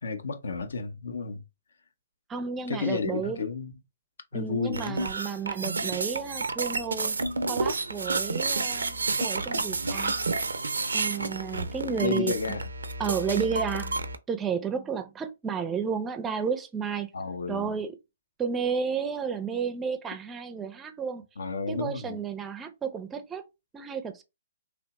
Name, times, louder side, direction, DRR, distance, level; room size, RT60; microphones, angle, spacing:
voice 1, 0.0-1.4 2.7-3.7 4.3-5.0 12.0-12.7 17.1-17.7 21.4-22.2, left 4 dB, 70° left, 0.5 m, -31 dB
voice 2, 2.3-3.4 4.3-7.2 7.5-10.1 10.9-12.4 13.0-17.1 17.5-17.9 18.4-21.2 21.7-23.4 23.7-24.2, right 6 dB, 15° right, 0.4 m, -32 dB
sound 1, 4.7-14.2, right 3 dB, 80° right, 0.4 m, -30 dB
2.9 x 2.1 x 2.9 m
figure-of-eight pair, 130°, 0 cm